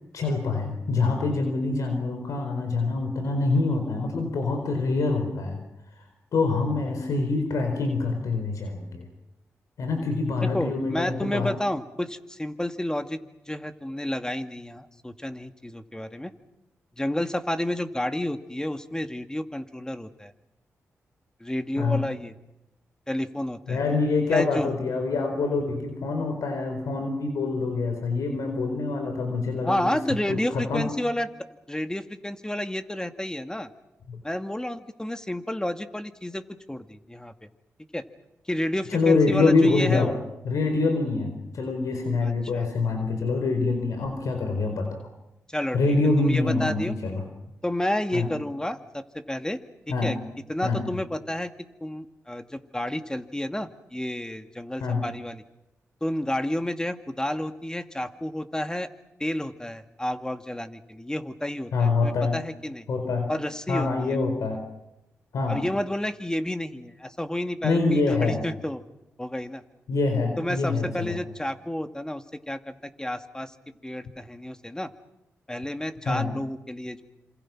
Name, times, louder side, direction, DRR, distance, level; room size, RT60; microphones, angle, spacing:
voice 1, 0.1-5.6 6.3-9.1 9.8-11.6 21.8-22.0 23.7-30.0 30.3-30.9 34.1-34.2 38.9-40.1 40.4-45.1 45.7-47.2 48.1-48.3 49.9-50.1 50.6-50.8 54.8-55.0 61.7-62.4 62.9-63.3 63.7-64.6 65.3-65.6 67.6-68.4 69.9-71.2 76.0-76.3, left 3 dB, 75° left, 5 dB, 4.4 m, -25 dB
voice 2, 10.4-13.2 13.5-16.3 17.0-20.3 21.4-22.3 23.1-23.8 24.3-24.7 29.6-31.3 31.7-33.7 34.2-37.3 37.9-38.0 38.5-40.1 42.2-42.7 45.5-45.8 46.2-46.9 47.6-49.6 50.0-50.2 50.5-55.4 56.0-58.9 59.2-62.9 63.3-64.2 65.5-68.8 69.2-69.6 70.4-73.5 73.8-74.9 75.5-77.0, left 1 dB, 10° left, 8 dB, 2.2 m, -30 dB
27.0 x 27.0 x 6.2 m, 0.90 s
supercardioid pair, 45°, 6 cm